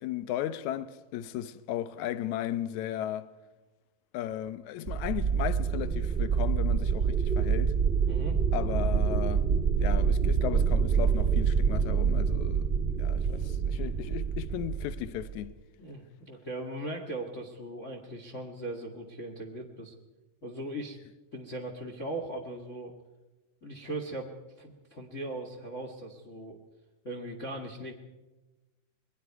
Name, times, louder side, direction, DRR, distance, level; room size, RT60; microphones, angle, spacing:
voice 1, 0.0-3.3 4.1-7.7 8.5-9.5 9.8-12.7 13.0-15.5, left 12 dB, 70° left, 2.1 m, -35 dB
sound 1, 4.9-15.5, right 6 dB, 25° right, 1.2 m, -27 dB
voice 2, 8.1-8.4 15.8-19.9 20.4-21.0 21.3-22.9 23.6-24.3 24.6-26.6 27.0-27.9, right 1 dB, 35° left, 1.3 m, -39 dB
27.5 x 21.5 x 4.7 m
omnidirectional pair, 3.8 m